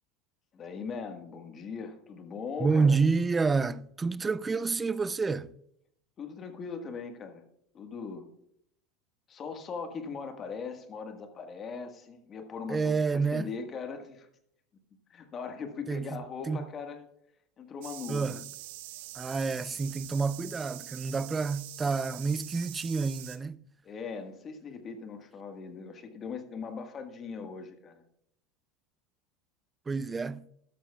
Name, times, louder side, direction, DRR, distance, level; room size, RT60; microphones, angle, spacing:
voice 1, 0.5-3.0 6.2-7.4 7.7-8.3 9.3-14.3 15.1-17.1 17.6-18.4 23.8-28.0, left 5 dB, 35° left, 1.6 m, -40 dB
voice 2, 2.6-5.5 12.7-13.5 15.9-16.6 18.1-18.4 19.1-23.6 29.9-30.5, right 4 dB, 20° right, 0.4 m, -29 dB
sound 1, 17.8-23.4, right 14 dB, 70° right, 1.0 m, -44 dB
13.5 x 12.5 x 2.4 m
hypercardioid pair, 90°, 0 cm